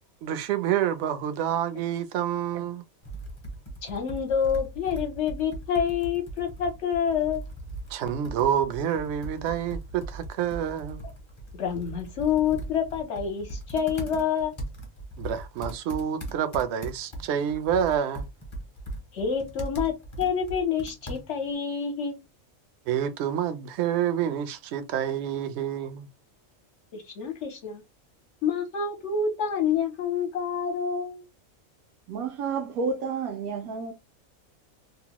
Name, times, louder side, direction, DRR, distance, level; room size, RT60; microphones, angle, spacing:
voice 1, 0.2-2.8 7.9-11.0 15.2-18.3 22.9-26.1, right 9 dB, 65° right, 0.7 m, -28 dB
Computer keyboard, 3.0-21.5, right 1 dB, 30° left, 0.6 m, -39 dB
voice 2, 3.8-7.4 11.5-14.5 19.1-22.2 26.9-27.8 28.4-31.2, left 7 dB, 60° left, 1.0 m, -27 dB
voice 3, 32.1-33.9, right 5 dB, 85° right, 1.1 m, -30 dB
2.9 x 2.1 x 2.9 m
omnidirectional pair, 1.5 m